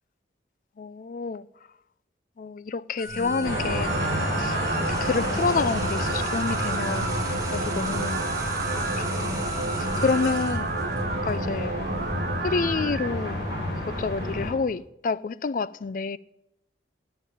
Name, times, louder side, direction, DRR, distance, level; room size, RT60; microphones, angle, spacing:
voice 1, 0.8-1.4 2.4-4.6 4.9-7.1 7.5-8.2 8.8-10.7 11.2-11.7 12.4-13.4 13.9-16.2, left 4 dB, 45° left, 0.3 m, -29 dB
sound 1, 3.0-11.9, right 3 dB, 20° right, 1.9 m, -35 dB
sound 2, 3.1-13.1, right 3 dB, 55° right, 1.1 m, -32 dB
sound 3, 3.4-14.5, left 1 dB, 65° left, 4.9 m, -30 dB
10.0 x 8.0 x 9.2 m
head